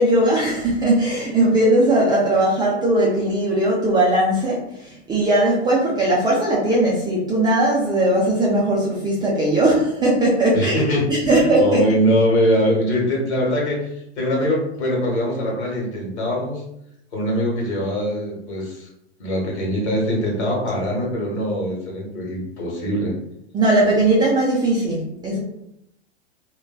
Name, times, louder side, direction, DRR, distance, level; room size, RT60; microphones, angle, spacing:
voice 1, 0.0-10.8 11.1-11.8 23.5-25.4, right 1 dB, 15° right, -5 dB, 0.3 m, -19 dB
voice 2, 10.5-13.9 14.2-16.6 17.1-18.9 19.2-23.1, equal, 70° left, -3 dB, 1.2 m, -22 dB
2.5 x 2.2 x 2.3 m, 0.78 s
hypercardioid pair, 100°, 35 cm